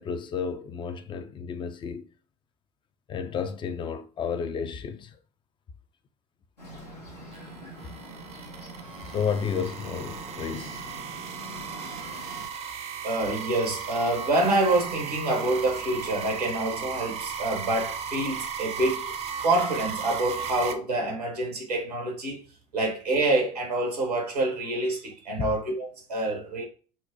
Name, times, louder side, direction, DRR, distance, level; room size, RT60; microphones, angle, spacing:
voice 1, 0.0-2.1 3.1-5.2 9.1-10.9 25.4-25.6, left 6 dB, 25° left, 0.4 m, -32 dB
Bird, 6.6-12.5, equal, 90° left, 1.0 m, -43 dB
sound 1, 7.3-20.7, right 7 dB, 30° right, 0.5 m, -36 dB
voice 2, 13.0-19.1 19.4-22.4 22.7-26.6, right 2 dB, 85° right, 1.2 m, -27 dB
4.2 x 2.0 x 2.7 m
figure-of-eight pair, 65°, 20 cm